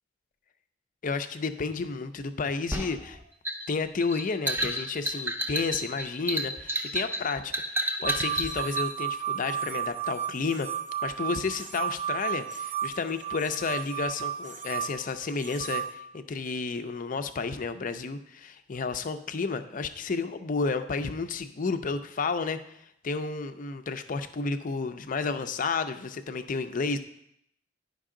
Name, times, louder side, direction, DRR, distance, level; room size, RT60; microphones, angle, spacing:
voice 1, 1.0-3.2 3.7-10.7 11.0-22.6 23.0-27.0, left 4 dB, 45° left, 9 dB, 0.5 m, -31 dB
sound 1, 2.7-8.9, right 1 dB, 10° right, 0.7 m, -31 dB
sound 2, 8.0-15.9, right 9 dB, 45° right, 0.6 m, -33 dB
10.0 x 5.3 x 3.7 m, 0.76 s
head